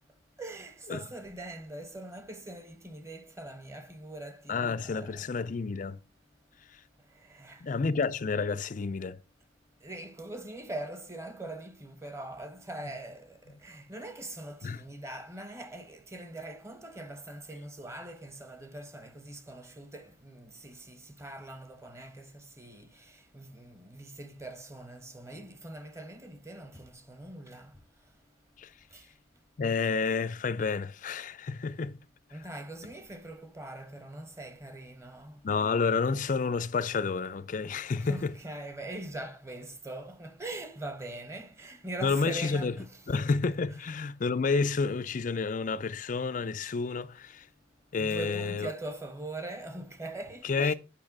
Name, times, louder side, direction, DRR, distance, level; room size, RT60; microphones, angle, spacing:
voice 1, 0.4-5.3 7.3-7.8 9.8-13.3 13.6-22.9 23.3-27.7 28.9-29.0 32.3-35.4 38.0-43.0 43.7-43.8 48.0-50.7, right 2 dB, 15° right, 1.0 m, -42 dB
voice 2, 4.5-6.0 6.7-6.8 7.6-9.2 14.6-14.8 28.6-28.7 29.6-31.9 35.4-38.3 42.0-42.7 43.1-47.5 47.9-48.7 50.4-50.7, left 4 dB, 45° left, 0.4 m, -30 dB
8.7 x 5.7 x 5.9 m
head